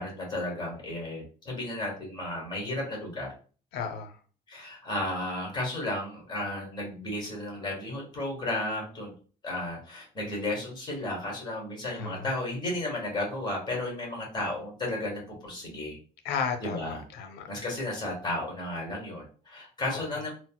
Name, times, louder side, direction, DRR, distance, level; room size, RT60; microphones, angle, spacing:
voice 1, 0.0-3.3 4.5-9.1 9.4-16.0 16.6-17.0 17.5-20.3, left 1 dB, 25° left, -1 dB, 1.5 m, -33 dB
voice 2, 3.7-4.1 12.0-12.3 16.2-17.5 19.9-20.0, left 6 dB, 75° left, 6 dB, 0.6 m, -33 dB
4.0 x 2.0 x 2.2 m, 0.40 s
cardioid pair, 110°, 17 cm